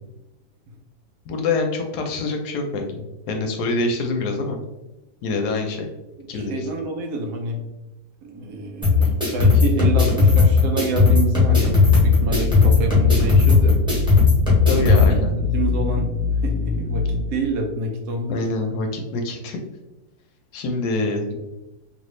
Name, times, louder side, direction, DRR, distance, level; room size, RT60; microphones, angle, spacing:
voice 1, 1.3-3.0 3.3-4.6 5.2-5.9 6.3-6.7 14.7-15.3 18.3-19.6 20.5-21.3, left 3 dB, 75° left, 3 dB, 1.1 m, -25 dB
voice 2, 6.2-7.6 8.2-13.8 14.8-18.4, right 2 dB, 75° right, 2 dB, 1.1 m, -28 dB
sound 1, 8.8-15.0, left 4 dB, 5° right, 1.0 m, -16 dB
sound 2, 11.6-17.2, left 3 dB, 55° left, 1.0 m, -25 dB
3.0 x 2.6 x 3.0 m, 0.98 s
omnidirectional pair, 1.8 m